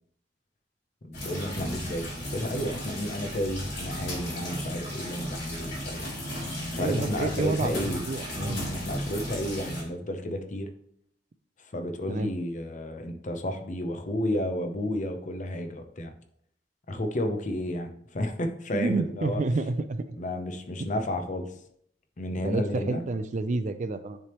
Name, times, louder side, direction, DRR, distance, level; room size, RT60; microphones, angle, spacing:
voice 1, 1.0-6.1 6.7-8.0 8.3-10.7 11.7-16.1 16.9-19.4 20.1-21.5 22.2-23.0, left 1 dB, 45° left, 6 dB, 0.6 m, -32 dB
sound 1, 1.1-9.8, equal, 65° left, 2.4 m, -35 dB
voice 2, 6.8-8.6 12.1-12.3 18.7-20.2 20.8-20.9 22.4-24.2, right 3 dB, 40° right, 11 dB, 0.4 m, -29 dB
9.7 x 3.4 x 3.0 m, 0.68 s
head